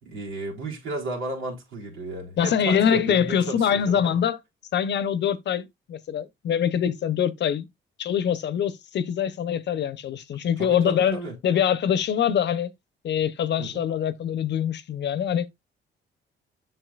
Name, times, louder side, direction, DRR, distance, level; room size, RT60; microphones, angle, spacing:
voice 1, 0.0-4.2 10.6-11.4 13.6-13.8, right 2 dB, 90° right, 3.8 m, -33 dB
voice 2, 2.4-4.4 4.7-7.7 8.0-12.7 13.0-15.4, left 8 dB, 60° left, 0.8 m, -24 dB
7.9 x 6.1 x 2.4 m
cardioid pair, 90°, 20 cm